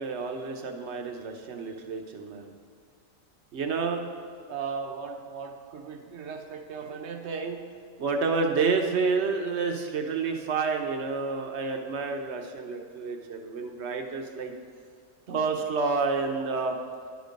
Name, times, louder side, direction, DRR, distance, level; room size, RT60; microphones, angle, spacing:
voice 1, 0.0-2.5 3.5-4.1 4.5-7.6 8.0-14.5 15.3-16.8, right 4 dB, 60° right, 4 dB, 1.0 m, -30 dB
11.0 x 5.2 x 5.2 m, 2.1 s
omnidirectional pair, 1.4 m